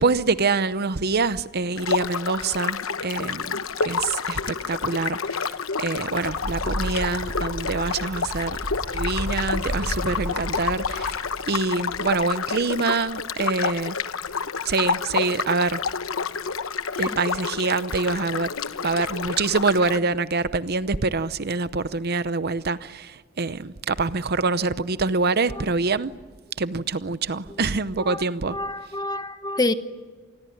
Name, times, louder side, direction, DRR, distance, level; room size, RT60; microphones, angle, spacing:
voice 1, 0.0-8.6 8.9-14.0 14.6-15.8 17.0-18.5 18.8-26.1 26.6-28.6, right 4 dB, 50° right, 0.8 m, -25 dB
sound 1, 1.8-20.0, left 5 dB, 85° left, 1.0 m, -29 dB
sound 2, 6.2-11.5, equal, 70° right, 4.6 m, -32 dB
voice 2, 28.5-29.7, left 2 dB, 20° left, 1.2 m, -26 dB
27.5 x 20.5 x 10.0 m
head